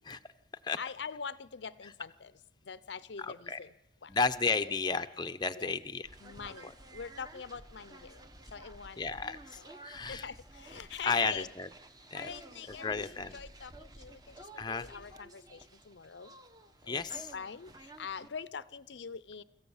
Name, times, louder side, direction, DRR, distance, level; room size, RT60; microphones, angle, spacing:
voice 1, 0.8-2.3 2.7-3.7 4.0-4.1 5.5-5.7 6.2-8.2 8.5-9.7 10.1-11.5 12.1-16.3 16.8-19.4, left 6 dB, 75° left, 17 dB, 0.7 m, -44 dB
voice 2, 3.2-3.6 4.1-6.1 6.6-6.7 9.0-10.2 11.0-11.7 12.1-12.3 12.8-13.4 14.6-14.9 16.9-17.3, left 4 dB, 25° left, 10 dB, 0.7 m, -33 dB
sound 1, 6.0-18.3, right 2 dB, 20° right, 1.2 m, -52 dB
25.5 x 14.5 x 7.2 m, 0.83 s
head